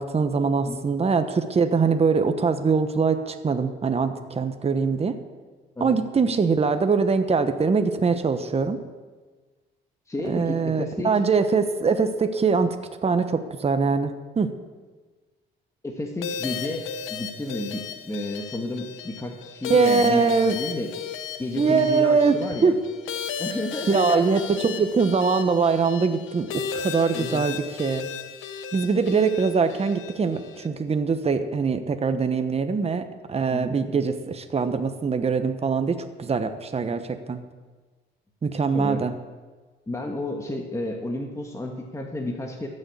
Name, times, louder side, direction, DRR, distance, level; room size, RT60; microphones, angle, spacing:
voice 1, 0.0-5.2 5.8-8.8 10.2-12.8 13.0-14.5 19.7-20.6 21.6-22.4 22.6-22.7 23.9-28.1 28.7-37.4 38.4-39.1, right 5 dB, 30° right, 8 dB, 1.0 m, -23 dB
voice 2, 10.1-11.1 15.8-20.9 21.4-22.8 23.4-24.4 27.1-27.5 33.5-34.0 38.7-39.0 39.9-42.7, left 1 dB, 15° left, 1 dB, 1.5 m, -32 dB
sound 1, 16.2-30.7, left 7 dB, 85° left, 1.0 m, -35 dB
13.5 x 6.6 x 8.4 m, 1.4 s
cardioid pair, 90°, 20 cm